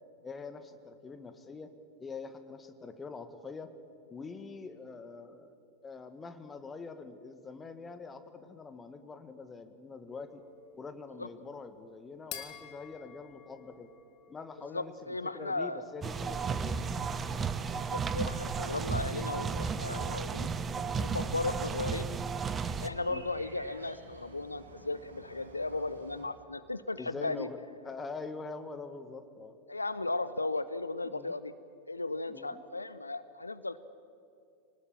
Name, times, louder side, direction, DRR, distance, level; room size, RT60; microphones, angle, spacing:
voice 1, 0.2-1.7 2.0-3.7 4.1-5.5 5.8-10.4 10.7-13.9 14.3-17.0 20.4-20.5 23.1-23.2 26.9-29.6 31.0-31.3 32.3-32.6, left 4 dB, 15° left, 9 dB, 1.7 m, -44 dB
cristal glass copas cristal, 10.1-14.9, left 9 dB, 45° left, 2.5 m, -50 dB
voice 2, 14.7-15.8 17.9-20.5 20.9-22.1 22.8-27.5 29.7-31.5 31.9-33.8, left 2 dB, 80° left, 14 dB, 0.7 m, -36 dB
sound 1, 16.0-22.9, right 5 dB, 20° right, 1.1 m, -34 dB
sound 2, 16.9-26.2, right 2 dB, 75° right, 3.9 m, -54 dB
25.0 x 19.0 x 8.8 m, 2.6 s
figure-of-eight pair, 90°, 0 cm